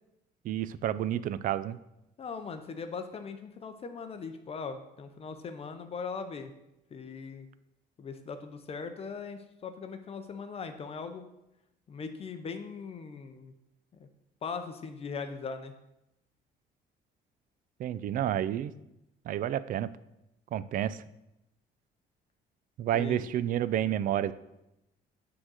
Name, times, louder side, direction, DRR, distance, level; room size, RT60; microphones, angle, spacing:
voice 1, 0.4-1.8 17.8-18.7 19.2-19.9 20.5-21.0 22.8-24.3, right 11 dB, 55° right, 16 dB, 0.4 m, -30 dB
voice 2, 2.2-6.5 6.9-7.5 8.0-11.3 11.9-13.5 14.0-14.1 14.4-15.7 22.9-23.3, left 5 dB, 35° left, 8 dB, 0.6 m, -40 dB
6.2 x 3.9 x 6.2 m, 0.88 s
cardioid pair, 110°, 17 cm